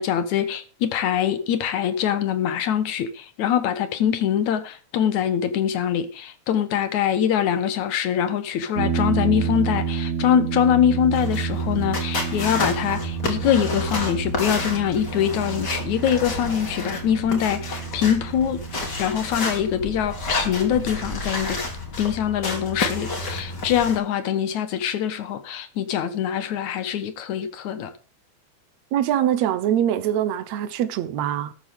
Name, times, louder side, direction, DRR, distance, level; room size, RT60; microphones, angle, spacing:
voice 1, 0.0-18.6 19.0-21.6 22.0-27.9, left 9 dB, 70° left, 2.7 m, -23 dB
sound 1, 8.8-21.9, right 8 dB, 90° right, 0.7 m, -30 dB
sound 2, 11.1-24.0, left 3 dB, 35° left, 3.4 m, -30 dB
voice 2, 28.9-31.5, right 10 dB, 70° right, 2.2 m, -23 dB
13.5 x 12.5 x 3.6 m
omnidirectional pair, 3.5 m